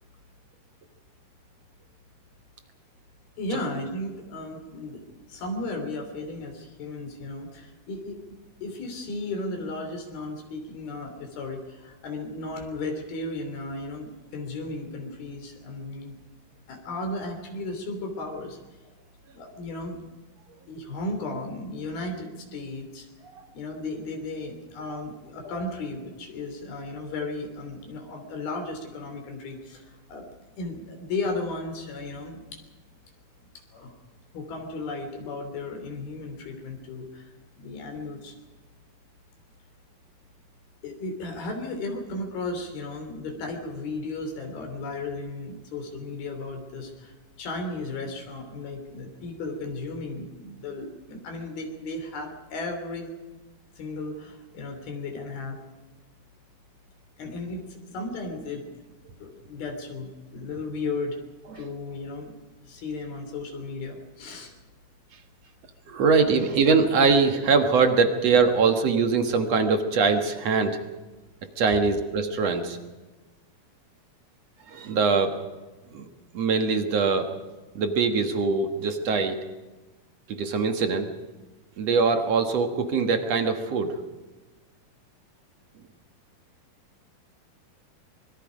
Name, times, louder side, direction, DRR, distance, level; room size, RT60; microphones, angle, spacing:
voice 1, 3.4-5.0 5.3-8.2 8.6-16.2 16.7-18.6 19.3-20.0 20.7-23.1 23.5-30.3 30.6-32.6 33.4-33.9 34.3-37.3 37.6-38.3 40.8-47.1 47.4-53.1 53.8-55.6 57.2-58.6 59.2-61.2 61.6-62.4 62.6-64.5, left 2 dB, 70° left, 3 dB, 5.0 m, -35 dB
voice 2, 65.9-70.8 71.6-72.8 74.7-75.4 75.9-76.1 76.3-77.3 77.8-79.4 80.3-81.1 81.8-84.0, right 4 dB, 55° right, 6 dB, 2.0 m, -22 dB
25.0 x 22.5 x 5.2 m, 1.2 s
omnidirectional pair, 4.5 m